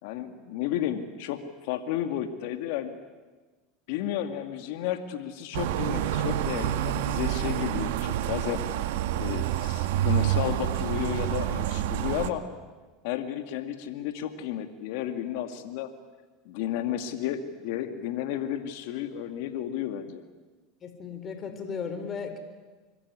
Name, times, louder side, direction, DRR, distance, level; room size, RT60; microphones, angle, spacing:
voice 1, 0.0-3.0 3.9-8.6 9.2-12.4 13.0-15.9 16.5-20.2, left 11 dB, 70° left, 7 dB, 2.3 m, -32 dB
sound 1, 5.5-12.3, right 12 dB, 75° right, 2.0 m, -28 dB
voice 2, 20.8-22.4, left 6 dB, 35° left, 8 dB, 4.4 m, -35 dB
26.5 x 22.5 x 9.9 m, 1.3 s
supercardioid pair, 100°, 0 cm